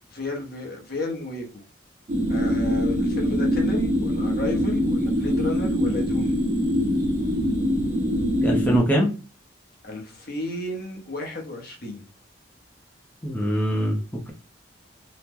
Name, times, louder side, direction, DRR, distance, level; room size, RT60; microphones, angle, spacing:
voice 1, 0.0-1.6 2.3-6.4 9.8-12.0, left 2 dB, 50° left, 0.7 m, -33 dB
sound 1, 2.1-8.8, equal, 40° right, 1.0 m, -23 dB
voice 2, 8.4-9.1 13.2-14.0, equal, 10° left, 0.5 m, -22 dB
2.9 x 2.0 x 3.5 m
head